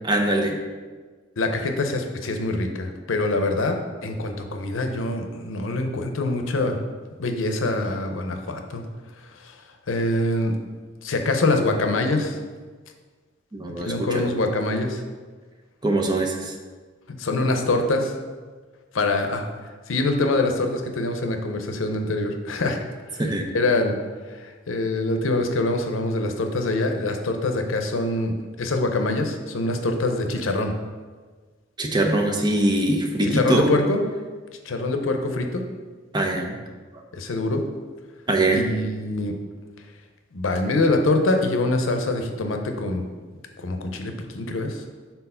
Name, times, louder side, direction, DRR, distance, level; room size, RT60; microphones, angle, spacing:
voice 1, 0.1-0.6 13.5-14.4 15.8-16.5 23.2-23.5 31.8-33.7 36.1-36.6 38.3-38.7, right 2 dB, 20° right, 2 dB, 0.6 m, -22 dB
voice 2, 1.4-3.8 4.0-6.8 7.2-8.8 9.4-9.6 9.9-10.5 11.0-12.4 13.8-15.0 17.1-18.1 18.9-19.5 19.9-23.2 23.5-24.0 24.3-30.7 33.2-34.0 34.6-35.6 37.1-37.6 38.5-39.3 40.3-43.0 43.6-44.8, left 2 dB, 85° left, 5 dB, 0.7 m, -24 dB
4.6 x 3.9 x 5.5 m, 1.4 s
head